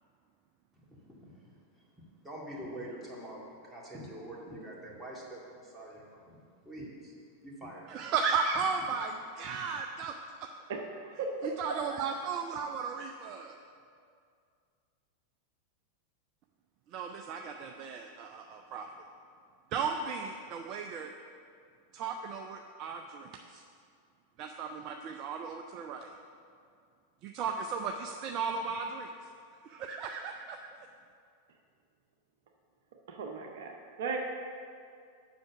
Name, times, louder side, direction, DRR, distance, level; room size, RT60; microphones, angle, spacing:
voice 1, 0.7-7.2 7.4-8.1, right 1 dB, 5° right, -5 dB, 2.1 m, -46 dB
voice 2, 7.9-10.1 11.6-13.6 16.9-18.9 19.7-21.1 21.9-23.6 24.4-26.1 27.2-29.1 29.6-30.6, right 5 dB, 40° right, 3 dB, 0.5 m, -35 dB
voice 3, 10.7-11.3 11.7-12.0 33.1-33.7 34.0-34.2, right 5 dB, 55° right, 1 dB, 0.9 m, -37 dB
7.7 x 6.0 x 6.9 m, 2.3 s
figure-of-eight pair, 90°, 0 cm